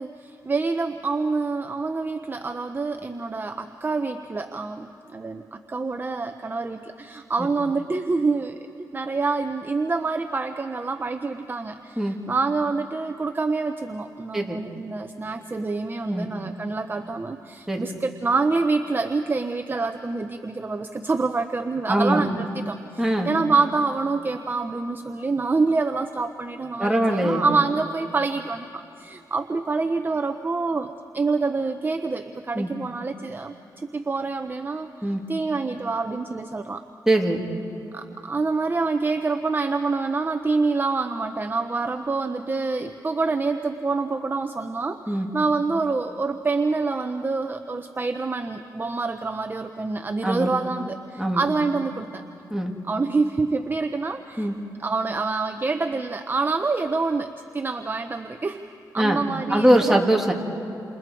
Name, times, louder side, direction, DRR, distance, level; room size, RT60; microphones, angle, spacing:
voice 1, 0.0-8.7 8.9-36.8 37.9-52.2 52.8-54.5 54.8-58.6 58.9-60.0, right 3 dB, 30° right, 7 dB, 0.8 m, -26 dB
voice 2, 21.9-22.2 23.0-23.3 26.8-27.4 32.5-32.7 35.0-35.2 37.1-37.4 45.1-45.3 50.2-50.5 51.2-51.5 52.5-52.7 54.4-54.5 59.0-59.2 59.5-60.3, right 1 dB, 5° right, 0 dB, 2.8 m, -22 dB
29.5 x 28.0 x 4.7 m, 2.9 s
cardioid pair, 95°, 7 cm